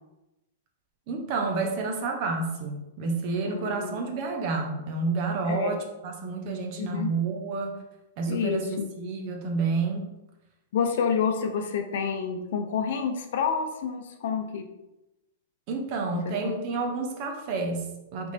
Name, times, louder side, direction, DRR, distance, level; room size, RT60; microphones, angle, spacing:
voice 1, 1.1-7.8 8.2-10.1 15.7-18.3, right 4 dB, 40° right, 2 dB, 0.8 m, -30 dB
voice 2, 3.4-4.0 5.5-5.7 6.8-7.1 8.3-8.8 10.7-14.7 16.2-16.5, left 6 dB, 65° left, 5 dB, 0.6 m, -28 dB
4.0 x 3.4 x 3.3 m, 0.94 s
supercardioid pair, 155°, 0 cm